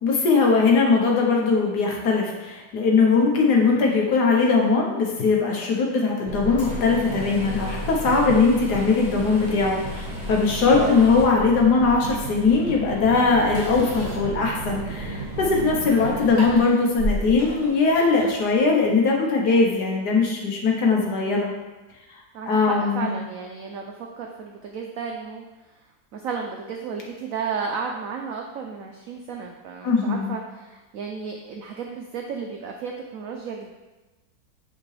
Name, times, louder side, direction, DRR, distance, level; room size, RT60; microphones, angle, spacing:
voice 1, 0.0-21.5 22.5-23.1 29.8-30.3, left 4 dB, 65° left, -1 dB, 1.5 m, -20 dB
sound 1, 6.3-16.6, right 1 dB, 50° right, 1.5 m, -33 dB
sound 2, 6.5-19.1, equal, 45° left, 2.1 m, -37 dB
voice 2, 10.7-11.1 22.3-33.7, right 5 dB, 85° right, 1 dB, 0.7 m, -33 dB
8.0 x 3.8 x 3.2 m, 1.1 s
omnidirectional pair, 2.0 m